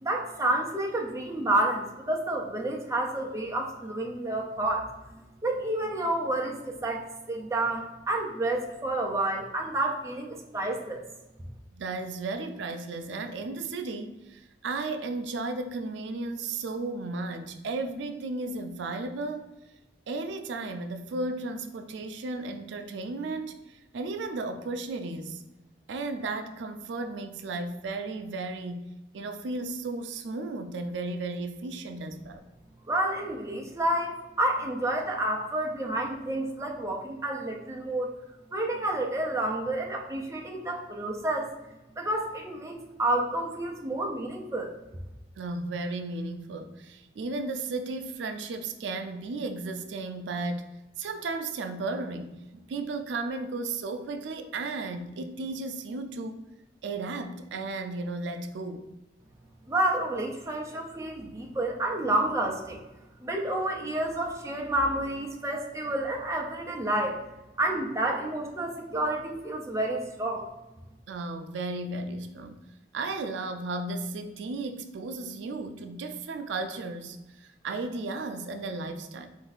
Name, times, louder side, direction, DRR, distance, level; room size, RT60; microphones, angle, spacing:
voice 1, 0.0-4.9 5.4-11.0 32.9-38.1 38.5-41.5 42.0-44.7 59.7-62.8 63.2-67.2 67.6-70.5, right 1 dB, 15° right, 1 dB, 0.5 m, -29 dB
voice 2, 11.7-19.5 20.1-25.4 25.9-32.4 45.4-56.4 56.8-58.9 71.1-72.6 72.9-79.3, right 3 dB, 80° right, 8 dB, 0.4 m, -34 dB
4.3 x 2.6 x 3.9 m, 1.0 s
head